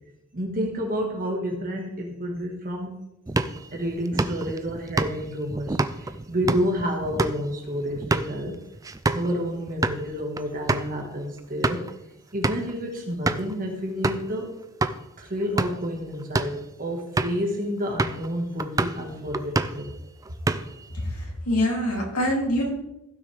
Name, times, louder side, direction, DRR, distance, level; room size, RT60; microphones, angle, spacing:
voice 1, 0.3-3.0 3.7-8.6 9.1-11.8 12.3-14.5 15.2-19.9, equal, 40° right, 1 dB, 1.6 m, -29 dB
sound 1, 3.3-9.3 9.7-10.0 10.4-10.5 10.7-10.9 11.4-11.9 12.4-12.7 13.3-13.5 14.0-14.3 14.8-15.0 15.4-15.9 16.2-16.6 17.2-17.5 18.0-18.3 18.6-19.0 19.3-19.9 20.2-20.9, right 2 dB, 15° right, 0.4 m, -27 dB
voice 2, 20.9-22.7, left 1 dB, 90° left, -2 dB, 3.0 m, -25 dB
15.5 x 6.3 x 3.4 m, 0.88 s
head